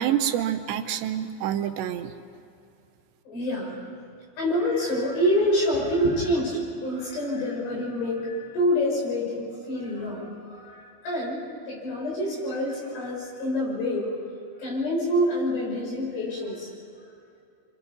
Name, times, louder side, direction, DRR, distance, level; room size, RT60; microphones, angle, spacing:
voice 1, 0.0-2.1, right 10 dB, 80° right, 8 dB, 3.0 m, -27 dB
voice 2, 3.3-3.8 4.4-14.2 14.6-16.7, equal, 65° left, -3 dB, 8.7 m, -27 dB
28.5 x 25.5 x 5.5 m, 2.5 s
omnidirectional pair, 5.2 m